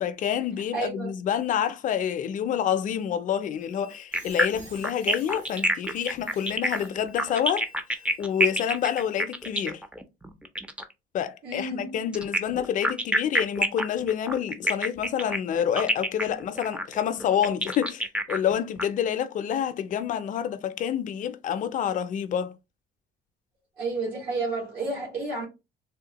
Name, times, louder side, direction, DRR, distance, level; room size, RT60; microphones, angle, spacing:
voice 1, 0.0-7.7 8.2-9.8 11.1-22.6, left 9 dB, 50° left, 0.4 m, -28 dB
voice 2, 0.7-1.1 11.4-12.0 23.8-25.5, right 3 dB, 65° right, 1.4 m, -31 dB
Squeak, 3.6-9.5, right 1 dB, 50° right, 1.7 m, -52 dB
sound 1, 4.1-10.9 12.1-18.8, right 1 dB, 5° right, 0.4 m, -27 dB
3.5 x 2.1 x 2.8 m
cardioid pair, 110°, 17 cm